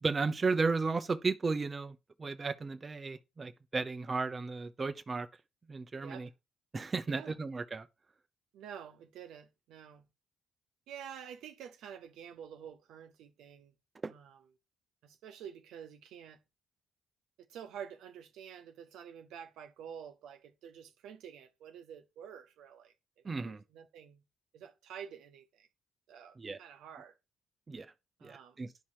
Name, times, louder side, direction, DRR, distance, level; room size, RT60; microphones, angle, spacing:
voice 1, 0.0-5.3 5.7-6.3 6.7-7.9 14.0-14.1 23.2-23.6 26.4-26.6 27.7-27.9 28.2-28.7, right 4 dB, 35° right, 0.7 m, -34 dB
voice 2, 6.0-6.3 7.1-7.4 8.5-10.0 10.9-13.7 14.1-14.5 15.0-16.4 17.5-24.2 24.5-25.7 26.1-27.2 28.2-28.6, right 8 dB, 70° right, 1.0 m, -49 dB
10.5 x 5.6 x 4.6 m
hypercardioid pair, 45°, 0 cm